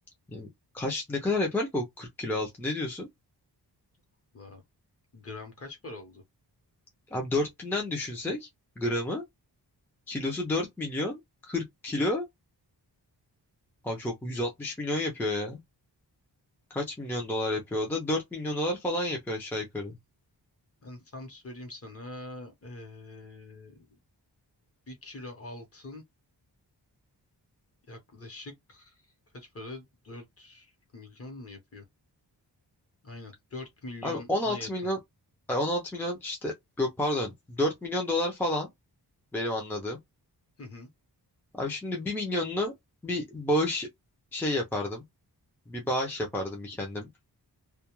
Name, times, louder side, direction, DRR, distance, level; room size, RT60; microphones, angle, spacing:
voice 1, 0.7-3.1 7.1-8.5 8.8-9.2 10.1-12.3 13.8-15.6 16.7-19.9 34.0-35.0 35.5-38.7 39.3-40.0 41.5-42.7 43.0-43.9 44.3-45.0 45.7-47.1, left 1 dB, 5° left, 0.4 m, -30 dB
voice 2, 5.1-6.2 20.8-23.8 24.9-26.0 27.9-29.0 29.3-31.8 33.0-34.7 40.6-40.9, left 2 dB, 35° left, 0.9 m, -44 dB
2.2 x 2.2 x 2.9 m
wide cardioid pair, 180°, 41 cm